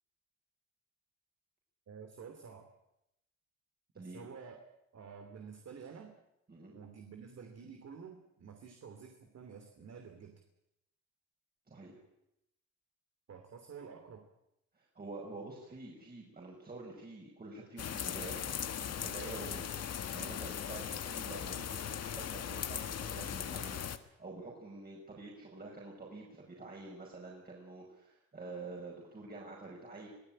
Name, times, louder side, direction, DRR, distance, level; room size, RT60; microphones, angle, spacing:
voice 1, 1.9-2.7 4.0-4.6 4.9-6.1 6.7-10.4 13.3-14.2, right 6 dB, 55° right, 5 dB, 3.1 m, -50 dB
voice 2, 3.9-4.3 6.5-6.8 11.7-12.0 14.7-30.1, right 3 dB, 30° right, -2 dB, 5.7 m, -48 dB
sound 1, 17.8-24.0, left 8 dB, 55° left, 1.6 m, -39 dB
24.5 x 15.5 x 8.9 m, 0.85 s
cardioid pair, 90°, 30 cm